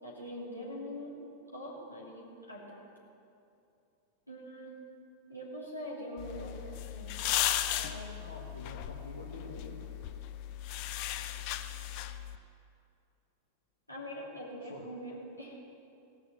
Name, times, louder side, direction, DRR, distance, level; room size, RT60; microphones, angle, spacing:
voice 1, 0.0-1.2 1.5-2.9 4.3-4.8 5.3-7.1 7.7-8.1 13.9-15.6, equal, 90° left, -5 dB, 2.7 m, -43 dB
sound 1, 6.2-12.4, left 12 dB, 45° left, 0.6 m, -36 dB
voice 2, 8.2-10.0 14.6-15.0, left 2 dB, 70° left, -4 dB, 1.4 m, -47 dB
17.0 x 6.3 x 7.5 m, 2.6 s
figure-of-eight pair, 90°, 0 cm